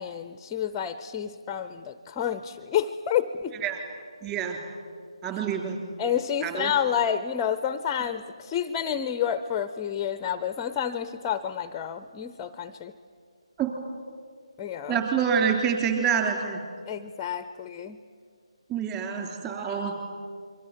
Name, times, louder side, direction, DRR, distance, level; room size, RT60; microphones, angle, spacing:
voice 1, 0.0-3.6 6.0-12.9 14.6-15.0 16.9-18.0, left 9 dB, 15° left, 12 dB, 0.6 m, -29 dB
voice 2, 4.2-4.6 5.2-5.8 6.4-6.7 13.6-13.7 14.9-16.6 18.7-19.9, right 7 dB, 20° right, 4 dB, 3.3 m, -27 dB
28.5 x 23.5 x 7.4 m, 2.2 s
figure-of-eight pair, 160°, 3 cm